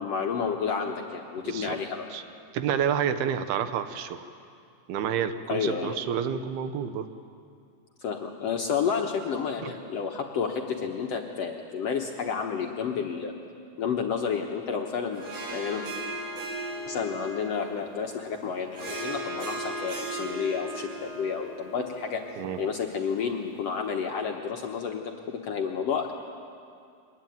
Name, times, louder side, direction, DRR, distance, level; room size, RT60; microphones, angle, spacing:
voice 1, 0.0-2.1 5.5-5.9 8.0-13.3 13.8-15.2 15.5-15.8 16.9-22.2 22.6-26.1, left 6 dB, 75° left, 1 dB, 1.5 m, -30 dB
voice 2, 1.4-1.8 2.1-2.2 2.5-4.2 4.9-7.1 9.6-9.7 22.4-22.6, right 8 dB, 80° right, 10 dB, 2.9 m, -29 dB
Harp, 15.1-23.8, right 1 dB, 65° right, 6.2 m, -38 dB
24.0 x 20.5 x 9.3 m, 2.4 s
omnidirectional pair, 4.5 m